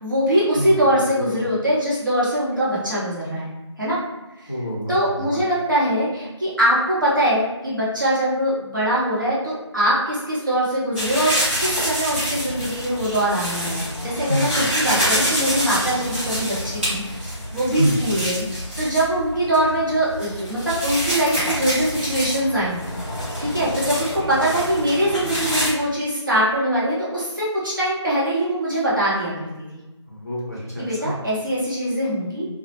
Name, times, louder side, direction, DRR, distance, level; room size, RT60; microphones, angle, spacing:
voice 1, 0.0-3.5 3.8-4.0 4.4-4.5 4.9-22.8 23.4-29.6 30.8-32.5, right 1 dB, 45° right, -8 dB, 0.9 m, -22 dB
voice 2, 4.5-5.0 5.3-5.4 14.3-14.7 17.6-18.2 30.1-31.1, equal, 35° left, -8 dB, 0.6 m, -26 dB
sound 1, 10.9-25.7, equal, 20° right, 0.8 m, -27 dB
2.1 x 2.0 x 2.8 m, 1.0 s
figure-of-eight pair, 175°, 15 cm